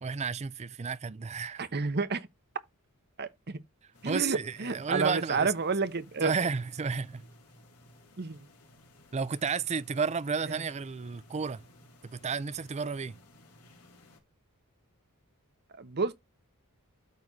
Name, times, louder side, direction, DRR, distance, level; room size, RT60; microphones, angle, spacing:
voice 1, 0.0-1.6 4.0-5.5 6.2-7.3 9.1-11.6 12.0-13.2, right 5 dB, 30° right, 0.4 m, -32 dB
voice 2, 1.6-2.3 3.2-3.6 4.0-6.3 8.2-8.5 10.5-10.6 15.8-16.1, right 4 dB, 50° right, 0.9 m, -30 dB
sound 1, 3.9-14.2, left 1 dB, 80° left, 3.5 m, -58 dB
13.0 x 4.8 x 2.7 m
head